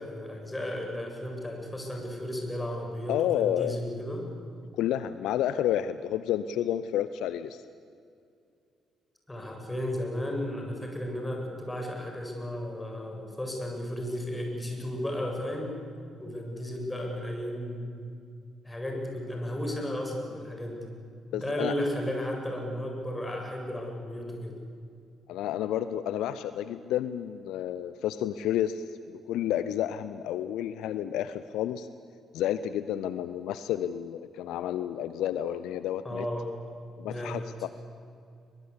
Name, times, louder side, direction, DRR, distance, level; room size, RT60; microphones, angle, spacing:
voice 1, 0.0-4.3 9.3-15.8 16.2-17.9 18.6-20.9 21.3-24.6 36.0-36.5 37.1-37.4, left 1 dB, 15° left, 2 dB, 7.3 m, -34 dB
voice 2, 3.1-3.8 4.8-7.6 21.3-21.7 25.3-31.9 32.3-36.3 37.0-37.7, left 11 dB, 65° left, 13 dB, 0.6 m, -30 dB
22.0 x 21.5 x 8.6 m, 2.4 s
figure-of-eight pair, 45°, 0 cm